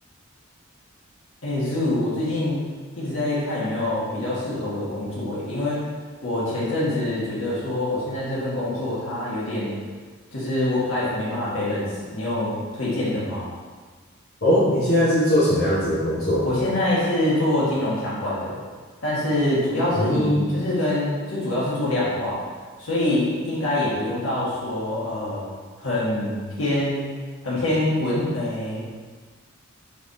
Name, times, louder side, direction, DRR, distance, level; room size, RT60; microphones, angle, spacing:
voice 1, 1.4-2.6 3.0-5.8 6.2-9.7 10.3-13.5 16.4-18.6 19.0-22.4 22.8-25.5 25.8-27.1 27.4-29.0, left 1 dB, 70° left, -8 dB, 1.5 m, -25 dB
voice 2, 14.4-16.5 19.9-20.7, equal, 50° left, -11 dB, 1.0 m, -20 dB
5.1 x 3.4 x 2.6 m, 1.5 s
head